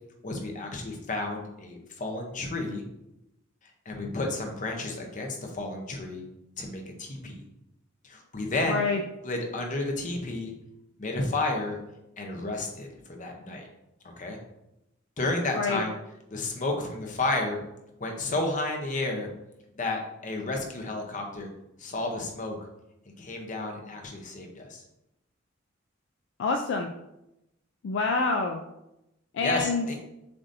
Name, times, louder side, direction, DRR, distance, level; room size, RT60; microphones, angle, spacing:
voice 1, 0.2-2.8 3.9-6.2 6.6-7.4 8.0-8.8 9.2-10.5 11.0-11.8 12.2-13.7 14.2-14.4 15.2-15.9 16.3-17.6 18.0-19.3 19.8-21.5 21.8-22.6 23.2-24.8 29.4-30.0, left 2 dB, 40° left, 2 dB, 0.8 m, -31 dB
voice 2, 8.7-9.0 15.5-15.8 26.4-26.9 27.8-28.6 29.3-29.9, left 4 dB, 60° left, 3 dB, 0.3 m, -26 dB
6.7 x 2.7 x 2.6 m, 0.89 s
head